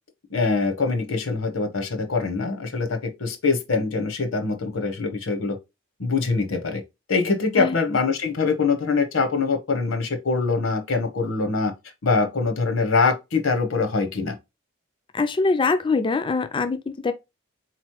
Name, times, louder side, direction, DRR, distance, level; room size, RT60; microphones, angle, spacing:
voice 1, 0.3-5.6 6.0-6.8 7.1-11.7 12.0-14.4, left 4 dB, 80° left, 0.8 m, -23 dB
voice 2, 15.1-17.1, left 4 dB, 25° left, 0.3 m, -23 dB
4.0 x 3.0 x 2.9 m
head